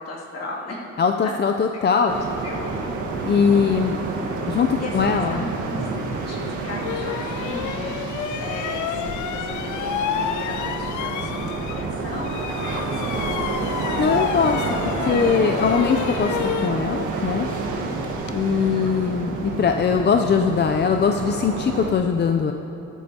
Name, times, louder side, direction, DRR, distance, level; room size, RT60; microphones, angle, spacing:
voice 1, 0.0-0.8 1.2-1.3 1.9-2.1 2.4-2.9 3.2-3.5 4.5-5.9 6.2-13.2 18.5-19.0, left 2 dB, 55° left, -4 dB, 2.6 m, -36 dB
voice 2, 1.0-2.1 3.2-4.0 4.5-5.4 14.0-16.4 16.6-17.5 18.3-22.5, left 6 dB, 35° left, 5 dB, 0.5 m, -21 dB
sound 1, 2.1-21.9, right 3 dB, 75° right, 1.6 m, -29 dB
sound 2, 6.2-6.3 6.8-12.0 12.2-18.4, left 9 dB, 75° left, 0.6 m, -30 dB
15.0 x 13.0 x 2.9 m, 3.0 s
cardioid pair, 90°, 30 cm